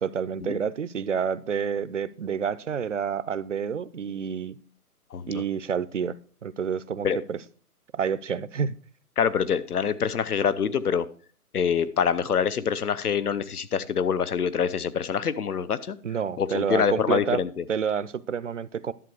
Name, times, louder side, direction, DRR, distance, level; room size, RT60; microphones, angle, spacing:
voice 1, 0.0-4.6 5.3-6.2 6.4-7.4 7.9-8.8 16.0-17.4 17.7-18.9, right 7 dB, 55° right, 0.6 m, -29 dB
voice 2, 5.1-5.4 7.0-7.2 9.2-11.1 11.5-16.0 16.4-17.6, left 7 dB, 75° left, 0.9 m, -25 dB
11.0 x 7.2 x 4.7 m
figure-of-eight pair, 155°, 46 cm